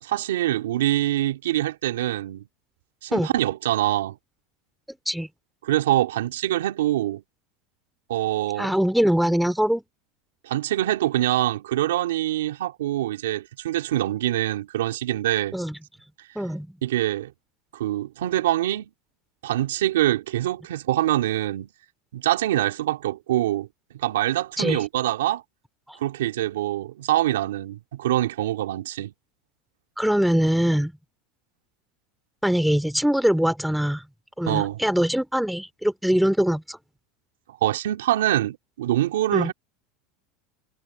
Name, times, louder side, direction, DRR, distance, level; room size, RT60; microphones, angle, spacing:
voice 1, 0.0-2.5 3.0-4.2 5.6-7.2 8.1-8.7 10.4-15.6 16.8-17.3 17.7-18.9 19.4-21.7 22.1-23.7 23.9-25.4 26.0-29.1 34.5-34.8 37.6-39.5, right 14 dB, 90° right, 2.9 m, -24 dB
voice 2, 8.6-9.8 15.5-15.8 16.3-16.8 24.6-24.8 25.9-26.0 30.0-30.9 32.4-34.0 34.4-36.8 39.3-39.5, equal, ahead, 2.7 m, -22 dB
supercardioid pair, 110°, 0 cm